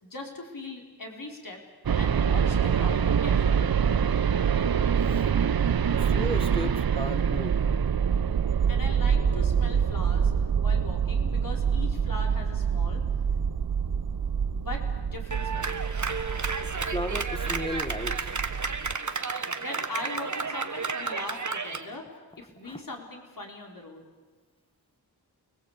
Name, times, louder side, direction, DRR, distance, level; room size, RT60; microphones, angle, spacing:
voice 1, 0.0-1.6 1.9-3.7 8.7-10.3 10.6-13.0 14.6-15.8 19.6-22.1 22.4-24.0, left 2 dB, 55° left, 1 dB, 5.1 m, -40 dB
sound 1, 1.9-18.9, right 7 dB, 65° right, 0.8 m, -26 dB
voice 2, 6.0-7.6 16.9-18.3 22.6-22.8, left 1 dB, 15° left, 10 dB, 1.4 m, -35 dB
Clapping, 15.3-21.9, right 4 dB, 50° right, 1.5 m, -32 dB
29.5 x 21.5 x 8.5 m, 1.3 s
wide cardioid pair, 70°, 39 cm